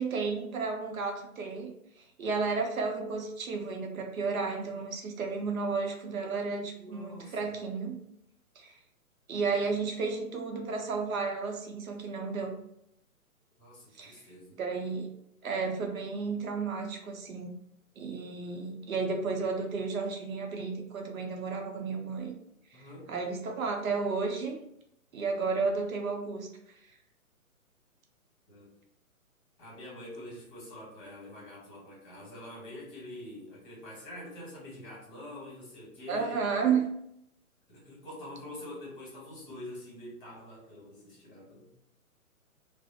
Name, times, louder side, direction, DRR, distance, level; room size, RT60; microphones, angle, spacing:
voice 1, 0.0-1.7 2.2-8.0 8.6-8.7 9.3-12.6 13.9-14.1 14.6-15.1 15.4-17.5 18.0-22.4 23.1-24.6 25.1-26.5 36.1-36.8, right 4 dB, 70° right, 3 dB, 0.7 m, -32 dB
voice 2, 6.8-7.6 9.5-9.7 13.6-14.6 22.7-23.1 28.5-28.7 29.6-36.5 37.7-41.7, left 1 dB, 35° left, -5 dB, 1.4 m, -46 dB
2.5 x 2.0 x 2.7 m, 0.77 s
hypercardioid pair, 150°, 43 cm